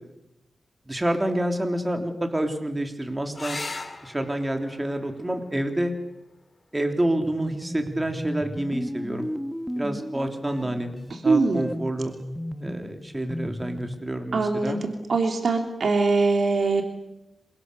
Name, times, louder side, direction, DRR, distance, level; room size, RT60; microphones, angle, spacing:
voice 1, 0.9-3.6 4.0-5.9 6.7-9.3 9.8-10.9 11.2-12.1 12.6-14.8, right 1 dB, 20° right, 4 dB, 3.3 m, -28 dB
sound 1, 3.3-8.4 10.3-10.9 14.3-14.5 14.8-14.9, left 3 dB, 35° left, 3.4 m, -41 dB
sound 2, 7.2-14.1, equal, ahead, 1.4 m, -35 dB
voice 2, 11.1-11.6 14.3-16.8, right 3 dB, 60° right, 4 dB, 3.1 m, -22 dB
28.0 x 25.0 x 6.9 m, 0.92 s
cardioid pair, 80°, 0 cm